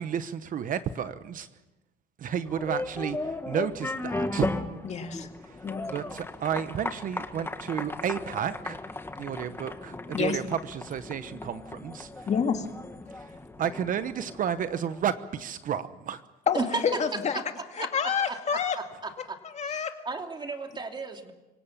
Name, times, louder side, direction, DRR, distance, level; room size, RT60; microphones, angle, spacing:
voice 1, 0.0-1.5 2.2-4.5 5.4-5.6 5.9-8.8 9.2-12.3 13.1-13.3 13.6-16.2 19.7-19.8, right 8 dB, 55° right, 12 dB, 1.1 m, -32 dB
sound 1, 2.4-15.2, left 2 dB, 15° left, 1.8 m, -36 dB
voice 2, 4.8-5.3 5.6-5.8 10.1-10.4 12.3-12.7 16.5-17.4 17.8-18.8 19.4-20.0, left 6 dB, 40° left, 5 dB, 2.2 m, -28 dB
voice 3, 20.0-21.3, right 3 dB, 25° right, 4 dB, 2.9 m, -32 dB
25.5 x 17.5 x 7.3 m, 1.0 s
cardioid pair, 110°, 17 cm